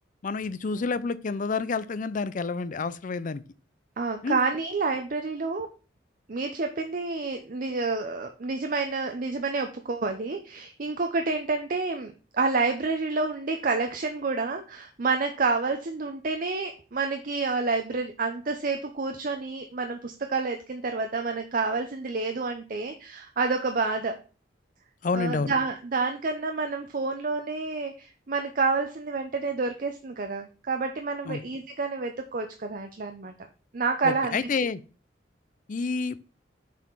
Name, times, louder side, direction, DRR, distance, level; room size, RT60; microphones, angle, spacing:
voice 1, 0.2-3.4 4.2-4.4 25.0-25.5 31.3-31.4 34.0-34.8 35.7-36.2, left 4 dB, 45° left, 16 dB, 0.4 m, -29 dB
voice 2, 4.0-5.7 6.3-24.2 25.1-33.3 33.7-34.4, right 4 dB, 50° right, 5 dB, 0.6 m, -29 dB
6.9 x 4.2 x 4.6 m, 0.34 s
head